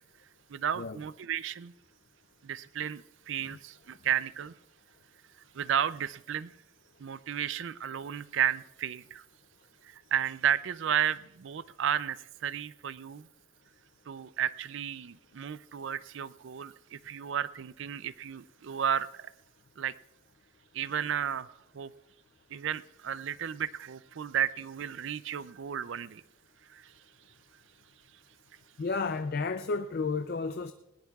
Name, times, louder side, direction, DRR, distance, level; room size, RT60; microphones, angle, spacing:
voice 1, 0.5-1.7 2.4-4.5 5.5-6.5 7.0-9.2 9.8-12.2 12.4-13.3 14.1-19.3 19.8-19.9 20.7-21.5 21.7-21.9 22.5-26.2 26.7-26.9, right 9 dB, 65° right, 0.4 m, -33 dB
voice 2, 28.8-30.7, left 4 dB, 45° left, 0.4 m, -32 dB
20.0 x 19.0 x 2.4 m
head